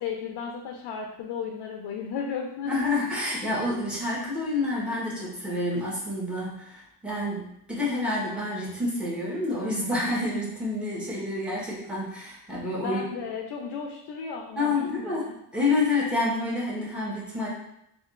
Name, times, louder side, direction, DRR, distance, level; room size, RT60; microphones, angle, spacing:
voice 1, 0.0-2.9 12.8-15.3, left 6 dB, 85° left, 1 dB, 0.6 m, -34 dB
voice 2, 2.7-13.0 14.6-17.5, left 2 dB, 5° right, -7 dB, 1.1 m, -28 dB
4.5 x 2.5 x 2.4 m, 0.80 s
cardioid pair, 130°, 39 cm